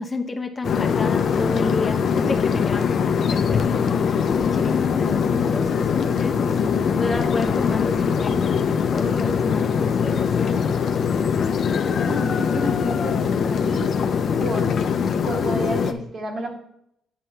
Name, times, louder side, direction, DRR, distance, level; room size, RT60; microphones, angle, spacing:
voice 1, 0.0-6.6 6.9-8.6 8.9-10.6, left 3 dB, 25° left, 5 dB, 0.7 m, -31 dB
sound 1, 0.6-15.9, left 6 dB, 60° left, 0.5 m, -22 dB
voice 2, 12.1-13.2 13.5-13.9 14.4-14.7 15.2-16.5, right 2 dB, 60° right, -1 dB, 2.0 m, -31 dB
9.0 x 5.4 x 3.3 m, 0.74 s
cardioid pair, 90°, 0 cm